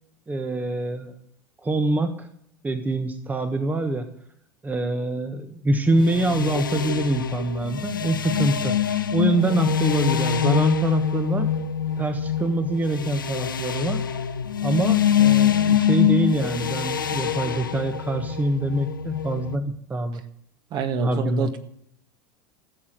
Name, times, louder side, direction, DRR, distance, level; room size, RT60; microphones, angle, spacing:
voice 1, 0.3-1.1 1.6-2.3 2.6-4.1 4.6-8.8 9.1-11.6 12.0-14.1 14.6-20.2 21.0-21.5, right 2 dB, 15° right, 8 dB, 1.3 m, -25 dB
sound 1, 5.9-19.6, left 8 dB, 85° left, 1.0 m, -24 dB
voice 2, 20.7-21.6, right 5 dB, 45° right, 7 dB, 2.0 m, -26 dB
15.5 x 7.5 x 9.2 m, 0.69 s
hypercardioid pair, 85°, 11 cm